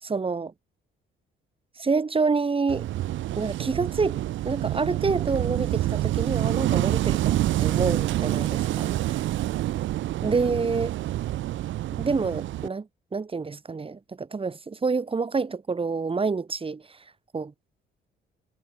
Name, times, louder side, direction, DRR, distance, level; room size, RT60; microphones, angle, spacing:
voice 1, 0.0-0.5 1.8-2.9 3.4-9.3 10.2-11.0 12.0-17.0 17.3-17.5, right 4 dB, 30° right, 2.4 m, -28 dB
Wind / Waves surf, 2.7-12.7, right 14 dB, 75° right, 0.7 m, -27 dB
cardioid pair, 90°, 20 cm